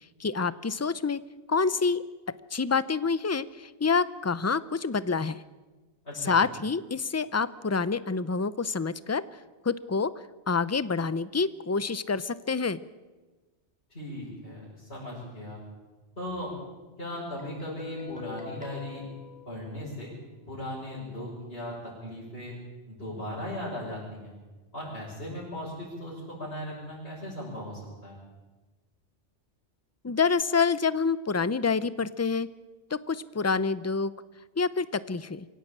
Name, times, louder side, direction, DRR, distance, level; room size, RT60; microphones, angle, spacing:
voice 1, 0.2-1.2 1.5-2.0 2.5-5.4 6.2-9.2 9.6-10.1 10.5-12.8 30.0-32.5 32.9-34.1 34.6-35.5, left 5 dB, 20° left, 16 dB, 0.5 m, -27 dB
voice 2, 6.0-6.4 13.9-15.6 16.2-16.5 17.0-19.0 19.4-20.1 20.5-22.5 22.9-24.3 24.7-28.2, left 1 dB, 60° left, -8 dB, 6.6 m, -37 dB
Guitar, 17.4-20.2, left 5 dB, 5° right, 4.7 m, -45 dB
24.0 x 16.5 x 8.7 m, 1.2 s
omnidirectional pair, 1.2 m